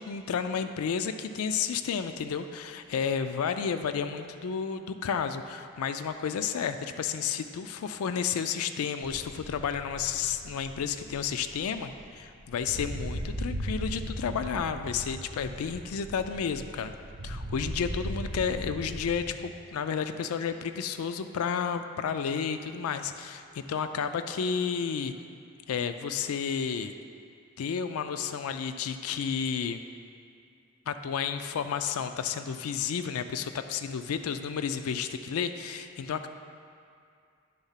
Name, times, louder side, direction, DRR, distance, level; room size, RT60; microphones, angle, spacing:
voice 1, 0.1-16.9 17.2-25.1 25.7-26.9 27.6-29.8 30.9-36.3, left 6 dB, 85° left, 9 dB, 0.4 m, -31 dB
sound 1, 9.0-19.4, equal, 65° right, 0.9 m, -38 dB
10.0 x 3.6 x 5.6 m, 2.4 s
head